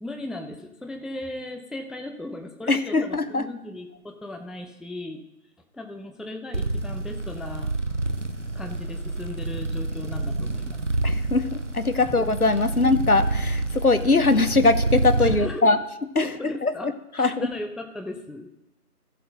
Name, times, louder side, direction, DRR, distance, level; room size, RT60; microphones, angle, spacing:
voice 1, 0.0-5.2 5.7-7.7 8.5-10.8 11.9-12.0 15.2-15.7 16.2-16.9 17.2-18.5, left 1 dB, ahead, 4 dB, 0.5 m, -37 dB
voice 2, 2.7-3.5 11.0-15.8 16.1-17.5, left 3 dB, 65° left, 11 dB, 0.9 m, -22 dB
sound 1, 6.5-15.4, right 2 dB, 50° right, 0.9 m, -28 dB
15.0 x 7.7 x 3.9 m, 0.89 s
figure-of-eight pair, 170°, 48 cm